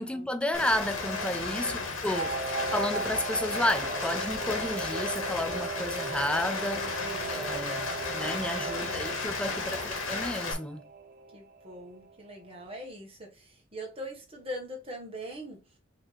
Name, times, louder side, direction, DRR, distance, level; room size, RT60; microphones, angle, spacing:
voice 1, 0.0-2.3 2.7-6.9 7.3-10.9, left 1 dB, 5° left, 0.4 m, -32 dB
Rain, 0.5-10.5, left 3 dB, 80° left, 1.3 m, -34 dB
voice 2, 1.0-1.9 6.5-7.6 8.0-9.4 11.3-15.6, equal, 30° right, 1.4 m, -43 dB
Singing / Musical instrument, 2.1-12.1 12.5-12.6, right 3 dB, 45° right, 0.7 m, -37 dB
5.5 x 3.0 x 3.3 m
head